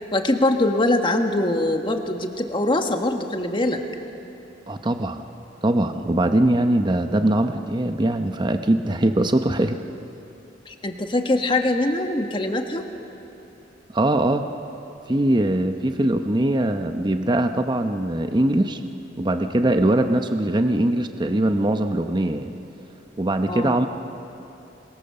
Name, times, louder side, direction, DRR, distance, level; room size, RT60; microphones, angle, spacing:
voice 1, 0.1-3.8 10.7-12.8 23.5-23.9, left 2 dB, 30° left, 4 dB, 1.6 m, -23 dB
voice 2, 4.7-5.3 5.6-9.8 13.9-14.4 15.1-18.8 19.2-22.5 23.2-23.9, right 1 dB, 25° right, 7 dB, 0.8 m, -21 dB
26.5 x 23.0 x 6.9 m, 2.9 s
head